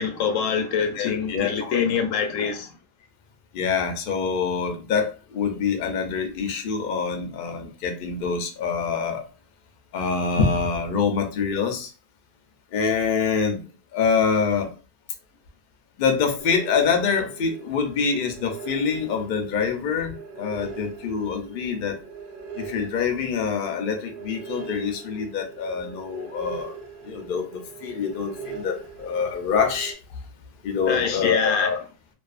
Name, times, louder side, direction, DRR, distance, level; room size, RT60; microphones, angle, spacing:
voice 1, 0.0-2.7 30.9-31.7, left 6 dB, 80° left, 0.9 m, -25 dB
voice 2, 0.9-1.8 2.4-2.5 3.5-9.2 9.9-11.9 12.7-13.6 13.9-14.7 16.0-22.0 22.6-26.7 27.0-30.0 30.6-31.8, left 5 dB, 60° left, 0.6 m, -25 dB
sound 1, 16.4-29.9, right 5 dB, 60° right, 0.6 m, -40 dB
2.5 x 2.4 x 2.3 m
omnidirectional pair, 1.3 m